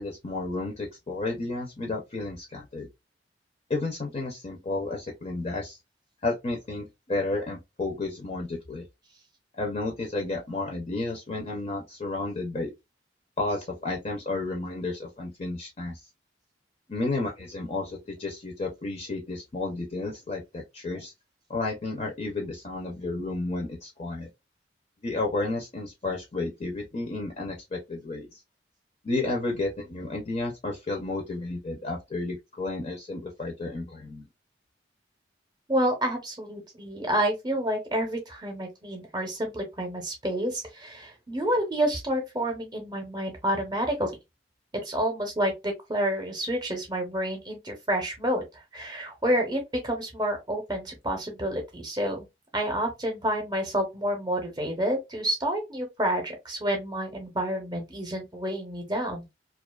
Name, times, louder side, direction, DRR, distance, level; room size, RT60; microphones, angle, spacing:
voice 1, 0.0-2.9 3.7-5.8 6.2-8.8 9.6-12.7 13.4-16.0 16.9-21.1 21.5-24.3 25.0-28.4 29.0-34.3, left 2 dB, 35° left, 0.5 m, -32 dB
voice 2, 35.7-44.1 44.8-52.2 52.5-59.2, right 1 dB, 25° right, 0.6 m, -29 dB
2.4 x 2.3 x 2.2 m
head